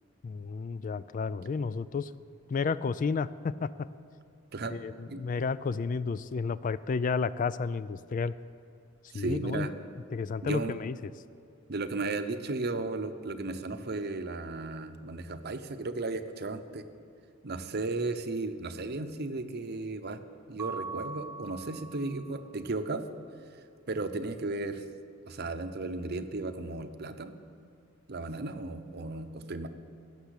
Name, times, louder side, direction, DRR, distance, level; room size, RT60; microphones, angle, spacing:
voice 1, 0.2-2.1 2.5-3.7 4.7-8.3 9.1-9.7 10.1-11.1, left 5 dB, 40° left, 16 dB, 0.3 m, -31 dB
voice 2, 9.1-9.7 10.4-10.7 11.7-16.8 17.4-20.2 20.5-23.1 23.9-24.8 25.3-27.4 28.1-29.7, right 3 dB, 55° right, 9 dB, 0.8 m, -35 dB
Mallet percussion, 20.6-22.4, right 4 dB, 15° right, 0.7 m, -41 dB
16.5 x 7.0 x 8.2 m, 2.5 s
head